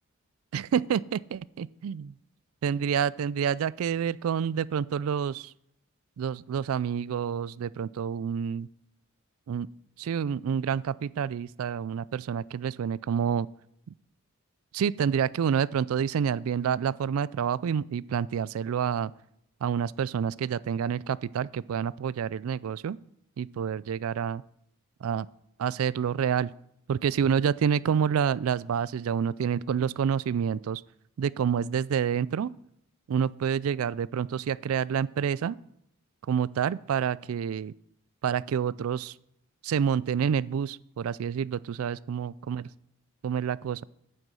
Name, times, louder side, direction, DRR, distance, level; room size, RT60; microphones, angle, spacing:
voice 1, 0.5-2.1 2.6-5.5 6.2-8.7 9.5-9.7 10.0-13.5 14.7-19.1 19.6-23.0 23.4-24.4 25.0-25.3 25.6-26.5 26.9-30.8 31.2-32.5 33.1-35.6 36.3-37.7 38.2-39.1 39.6-42.6 43.2-43.8, right 7 dB, 80° right, 20 dB, 0.3 m, -28 dB
9.2 x 8.1 x 6.3 m, 0.73 s
head